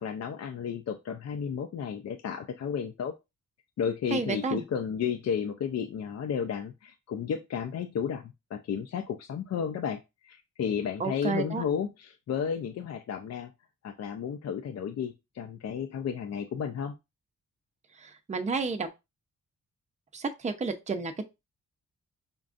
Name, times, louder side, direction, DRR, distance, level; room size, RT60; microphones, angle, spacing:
voice 1, 0.0-3.1 3.8-13.5 13.8-16.9, left 7 dB, 55° left, 0.5 m, -33 dB
voice 2, 4.1-4.6 11.0-11.6 18.0-18.9 20.1-21.2, right 4 dB, 25° right, 0.6 m, -31 dB
5.1 x 2.3 x 2.5 m
cardioid pair, 105°, 31 cm